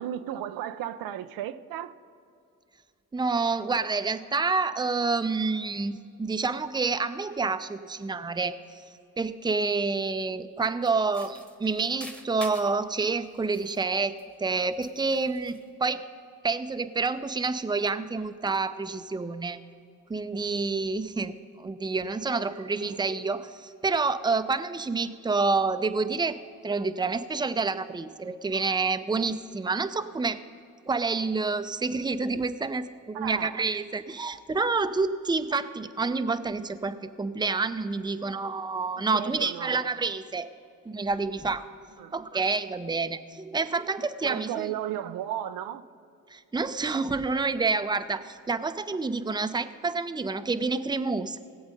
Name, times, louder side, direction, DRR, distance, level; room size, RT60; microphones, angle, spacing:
voice 1, 0.0-1.9 22.8-23.0 33.1-33.6 39.0-39.9 42.0-42.1 44.2-45.8, right 11 dB, 75° right, 11 dB, 0.6 m, -35 dB
voice 2, 3.1-8.6 9.2-16.0 16.4-19.6 20.1-26.4 26.6-30.4 30.9-40.5 40.9-41.7 42.1-44.7 46.3-51.4, right 4 dB, 10° right, 10 dB, 0.6 m, -28 dB
sound 1, 10.8-12.8 13.4-14.5 14.8-15.7, equal, 5° left, 1.2 m, -46 dB
18.0 x 7.9 x 5.2 m, 2.4 s
supercardioid pair, 65°, 35 cm